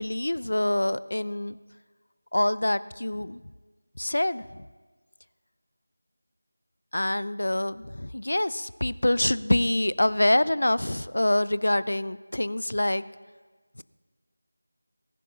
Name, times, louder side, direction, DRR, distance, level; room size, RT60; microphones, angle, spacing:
voice 1, 0.0-1.5 2.3-3.4 4.0-4.4 6.9-13.0, left 1 dB, 75° left, 17 dB, 0.4 m, -25 dB
21.0 x 11.0 x 2.8 m, 1.4 s
figure-of-eight pair, 170°, 0 cm